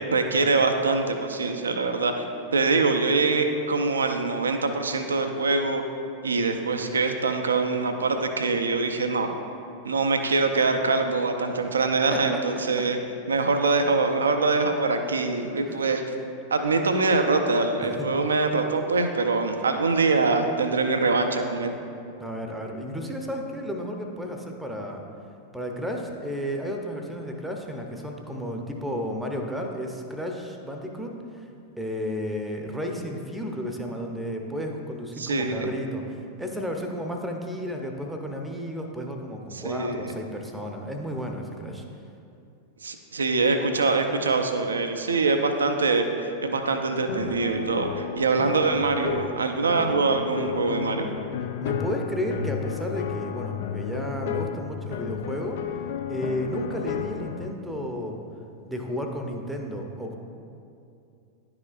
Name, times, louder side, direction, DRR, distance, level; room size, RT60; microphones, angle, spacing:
voice 1, 0.1-2.2 2.5-5.8 6.2-9.3 9.8-13.0 13.3-16.0 16.5-21.8 35.2-35.7 39.5-40.1 42.8-51.1, right 3 dB, 70° right, 6 dB, 0.5 m, -24 dB
voice 2, 12.1-12.4 12.8-12.9 15.7-15.8 18.0-18.1 22.2-25.0 25.5-31.5 31.8-41.8 51.6-55.6 56.1-58.2 58.6-60.2, equal, 5° right, 2 dB, 0.7 m, -32 dB
sound 1, 47.1-57.5, left 8 dB, 55° left, 0.3 m, -33 dB
11.0 x 4.8 x 2.4 m, 2.6 s
figure-of-eight pair, 90°, 0 cm